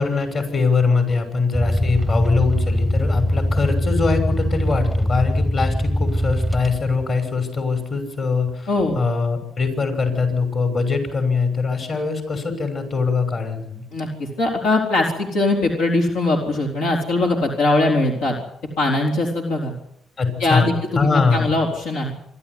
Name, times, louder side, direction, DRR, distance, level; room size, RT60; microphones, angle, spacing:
voice 1, 0.0-8.7 8.9-13.8 20.2-21.5, left 4 dB, 50° left, 6 dB, 6.2 m, -22 dB
sound 1, 1.5-7.1, equal, 5° left, 0.8 m, -21 dB
voice 2, 8.7-9.0 13.9-18.4 18.8-19.7 20.4-22.1, left 2 dB, 90° left, -1 dB, 4.3 m, -21 dB
26.5 x 12.0 x 9.8 m, 0.77 s
cardioid pair, 90°, 0 cm